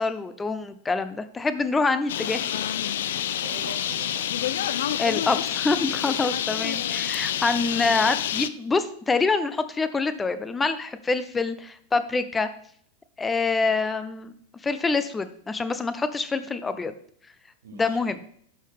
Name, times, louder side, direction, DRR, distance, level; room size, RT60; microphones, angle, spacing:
voice 1, 0.0-2.4 5.0-12.5 13.2-14.3 14.6-16.9 17.7-18.2, left 4 dB, 15° left, 12 dB, 0.6 m, -26 dB
Bird, 2.1-8.5, left 10 dB, 60° left, 0.4 m, -28 dB
voice 2, 3.4-5.0 17.6-18.1, right 2 dB, 65° right, 2 dB, 1.7 m, -44 dB
11.5 x 5.5 x 3.5 m, 0.62 s
figure-of-eight pair, 90°, 0 cm